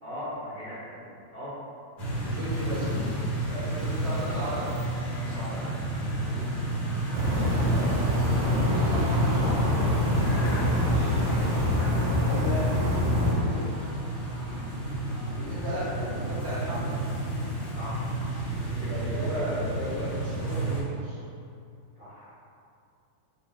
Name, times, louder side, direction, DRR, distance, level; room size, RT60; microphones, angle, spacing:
voice 1, 0.0-1.5 5.9-6.4 9.6-10.6 12.0-12.2 14.4-14.6 17.7-18.1 18.6-19.4 22.0-22.3, equal, 50° right, -12 dB, 0.6 m, -41 dB
sound 1, 2.0-20.8, right 1 dB, 55° left, 0.7 m, -31 dB
voice 2, 2.2-4.7 5.1-5.7 7.2-7.9 8.3-9.0 9.7-11.1 12.2-12.7 13.1-13.7 15.3-17.0 18.8-21.2, equal, 20° right, -10 dB, 0.9 m, -36 dB
sound 2, 7.1-13.3, left 1 dB, 85° right, 1.8 m, -25 dB
4.3 x 3.5 x 2.3 m, 2.6 s
omnidirectional pair, 2.4 m